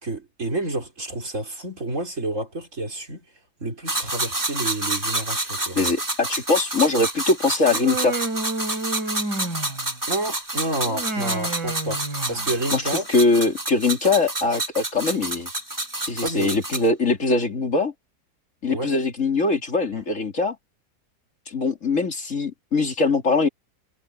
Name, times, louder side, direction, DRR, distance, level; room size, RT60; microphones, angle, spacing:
voice 1, 0.0-3.3 3.6-5.8 10.1-12.0 12.3-13.1 16.2-16.6 18.7-18.9 19.9-20.0, right 2 dB, 50° right, 5.0 m, -29 dB
sound 1, 3.9-16.9, right 2 dB, 10° right, 1.4 m, -29 dB
voice 2, 5.8-8.1 12.7-12.8 13.1-15.5 16.1-17.9 18.6-20.6 21.5-23.5, left 3 dB, 50° left, 3.1 m, -22 dB
Human voice, 7.7-10.0 10.8-12.7, right 3 dB, 85° right, 4.3 m, -30 dB
omnidirectional pair, 1.8 m